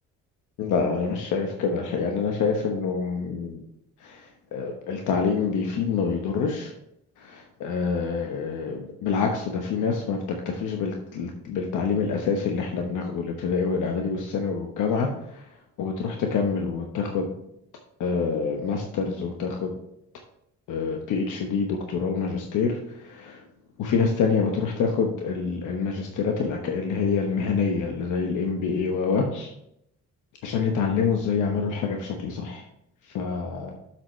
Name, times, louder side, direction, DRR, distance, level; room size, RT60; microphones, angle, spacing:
voice 1, 0.6-3.6 4.0-6.7 7.2-10.2 10.4-15.5 15.8-17.3 18.0-19.7 20.7-23.4 23.8-29.5 30.4-32.6 33.1-33.8, left 5 dB, 85° left, 2 dB, 1.1 m, -26 dB
7.7 x 7.3 x 3.2 m, 0.77 s
cardioid pair, 90°, 30 cm